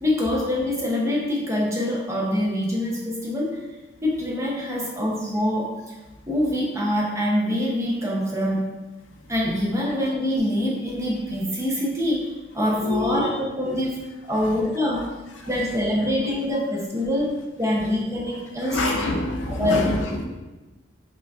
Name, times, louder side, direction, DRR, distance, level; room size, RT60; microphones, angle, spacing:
voice 1, 0.0-3.6 4.0-6.0 6.3-8.7 9.3-15.1 15.5-18.9 19.5-19.9, left 1 dB, 15° right, -3 dB, 0.5 m, -25 dB
voice 2, 12.8-13.4 18.6-20.2, left 2 dB, 80° left, 2 dB, 0.5 m, -26 dB
4.9 x 2.4 x 2.3 m, 1.1 s
head